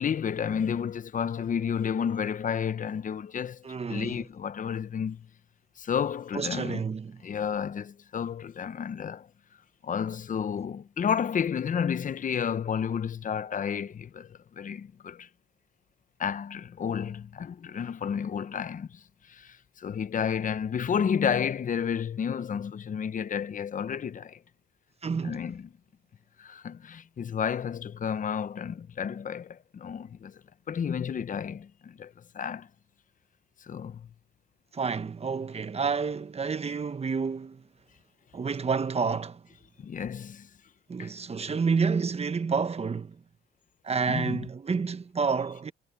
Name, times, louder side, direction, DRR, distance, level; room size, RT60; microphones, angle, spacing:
voice 1, 0.0-5.3 5.8-6.8 7.2-9.3 9.8-15.3 16.2-24.4 25.2-25.7 26.4-30.4 30.7-32.7 33.6-34.1 39.8-40.5 41.0-41.1 44.1-44.4, left 7 dB, 40° left, 0.9 m, -31 dB
voice 2, 3.6-4.1 6.3-7.2 25.0-25.4 34.7-37.6 38.3-39.4 40.9-43.2 43.8-45.7, right 5 dB, 30° right, 1.2 m, -29 dB
cardioid pair, 90°, 20 cm